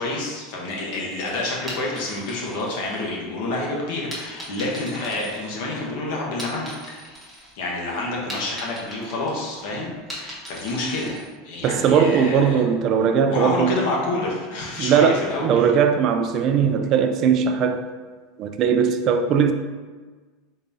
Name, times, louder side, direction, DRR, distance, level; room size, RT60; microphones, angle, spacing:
voice 1, 0.0-6.8 7.5-11.2 11.4-12.6 13.3-15.6, left 2 dB, 70° left, 1.0 m, -28 dB
sound 1, 1.5-3.5 4.1-5.9 6.2-7.5 7.9-11.3, equal, 5° left, 1.0 m, -39 dB
voice 2, 11.6-13.8 14.8-17.8 18.4-19.5, right 7 dB, 40° right, 0.3 m, -19 dB
3.9 x 3.5 x 2.7 m
supercardioid pair, 145°, 0 cm